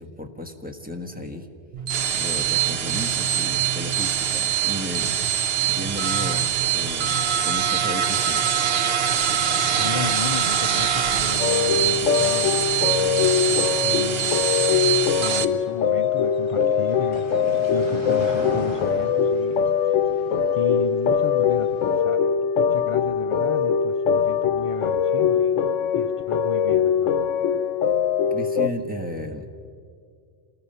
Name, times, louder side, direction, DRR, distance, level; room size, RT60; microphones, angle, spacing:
voice 1, 0.0-1.5 2.1-5.1 5.7-8.5 28.3-29.5, left 1 dB, 5° right, 3 dB, 1.5 m, -34 dB
sound 1, 1.7-15.4, right 9 dB, 60° right, 0.9 m, -23 dB
sound 2, 7.0-22.0, equal, 20° right, 2.4 m, -41 dB
voice 2, 9.8-14.7 15.1-27.1, left 5 dB, 45° left, 7 dB, 0.4 m, -35 dB
sound 3, 11.4-28.7, left 7 dB, 85° left, 1.0 m, -22 dB
27.5 x 19.5 x 5.5 m, 2.3 s
omnidirectional pair, 1.2 m